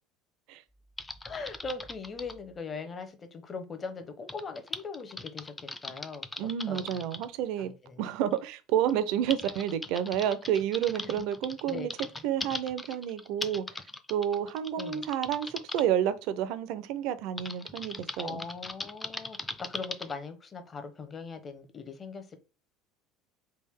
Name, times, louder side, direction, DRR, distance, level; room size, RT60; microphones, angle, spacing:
Typing, 1.0-2.4 4.3-7.3 8.3-8.4 8.9-15.8 17.4-20.1, left 2 dB, 15° left, 0.4 m, -40 dB
voice 1, 1.2-6.2 6.7-7.1 7.6-8.0 11.0-11.2 11.6-11.9 14.8-15.0 18.2-22.4, left 4 dB, 30° left, 0.8 m, -40 dB
voice 2, 6.4-7.7 8.0-11.9 12.2-13.6 14.1-18.4, right 10 dB, 70° right, 0.5 m, -30 dB
3.4 x 2.5 x 3.5 m
supercardioid pair, 90°, 0 cm